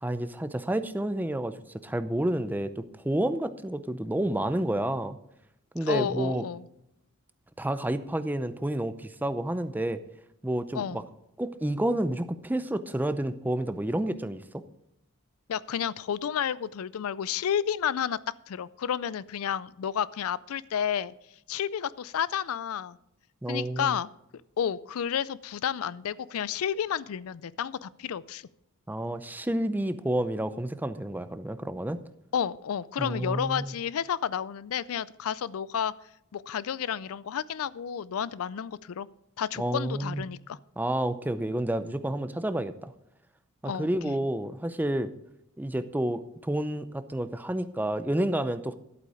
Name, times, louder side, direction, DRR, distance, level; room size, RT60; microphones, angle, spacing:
voice 1, 0.0-5.2 5.7-6.5 7.6-10.0 10.4-11.0 11.4-14.6 23.4-23.9 28.9-32.0 33.0-33.7 39.6-40.3 40.8-42.9 43.6-45.1 45.6-48.7, right 1 dB, 10° right, 12 dB, 0.5 m, -30 dB
voice 2, 5.8-6.6 10.7-11.0 15.5-18.2 18.5-21.1 21.5-23.0 23.5-24.1 24.6-28.4 32.3-35.9 36.3-39.1 39.4-40.6 43.6-44.1, left 8 dB, 70° left, 20 dB, 0.4 m, -31 dB
11.5 x 8.4 x 4.9 m, 0.83 s
head